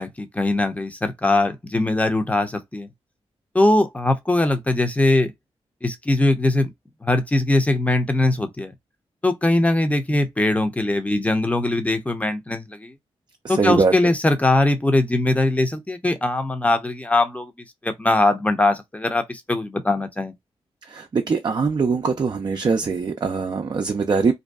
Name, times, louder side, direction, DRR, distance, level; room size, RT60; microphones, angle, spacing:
voice 1, 0.0-2.9 3.5-5.3 5.8-6.7 7.0-8.7 9.2-12.9 13.5-17.5 17.8-20.3, left 2 dB, 10° left, 0.6 m, -21 dB
voice 2, 13.4-14.1 20.8-24.3, right 5 dB, 40° right, 0.4 m, -22 dB
2.6 x 2.2 x 2.2 m
cardioid pair, 55°, 11 cm